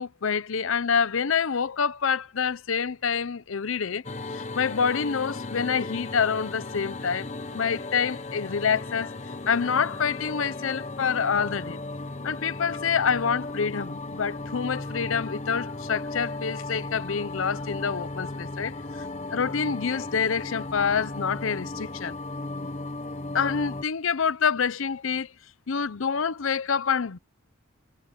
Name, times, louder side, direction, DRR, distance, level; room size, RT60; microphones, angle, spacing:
voice 1, 0.0-4.0 4.3-9.2 9.5-11.8 12.2-18.8 19.3-22.2 23.3-25.3 25.7-27.2, left 6 dB, 75° left, 0.7 m, -27 dB
sound 1, 4.0-23.8, left 2 dB, 35° left, 1.1 m, -36 dB
head